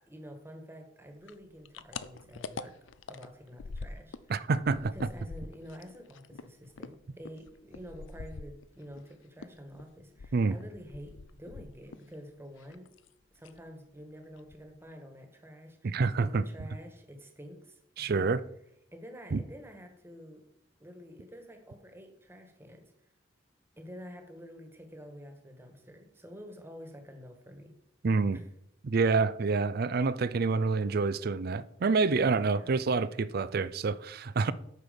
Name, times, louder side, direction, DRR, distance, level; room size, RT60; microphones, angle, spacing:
voice 1, 0.1-2.8 3.1-4.2 4.9-12.9 13.3-18.3 18.9-20.4 20.8-22.8 23.8-27.7 28.3-28.5 32.3-33.0, equal, 15° right, 1.5 m, -48 dB
sound 1, 1.2-4.3 4.6-9.1 9.4-12.1 12.4-13.1 13.4-13.7 14.0-14.1 14.4-14.9, left 4 dB, 85° left, 0.5 m, -45 dB
voice 2, 4.3-4.9 10.3-10.6 15.8-16.4 18.0-18.4 19.3-19.4 28.0-28.4 28.8-34.5, right 4 dB, 55° right, 0.5 m, -27 dB
9.2 x 6.5 x 5.1 m
head